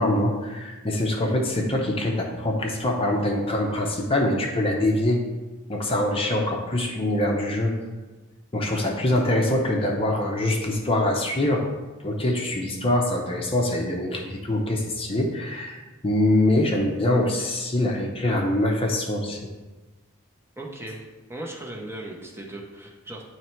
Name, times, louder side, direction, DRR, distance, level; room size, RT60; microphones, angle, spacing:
voice 1, 0.0-5.2 5.7-7.7 8.5-11.7 12.0-15.8 16.0-19.4, left 1 dB, 25° left, 0 dB, 0.7 m, -24 dB
voice 2, 20.6-23.2, right 1 dB, 10° right, -1 dB, 0.8 m, -37 dB
9.5 x 3.2 x 4.4 m, 1.2 s
head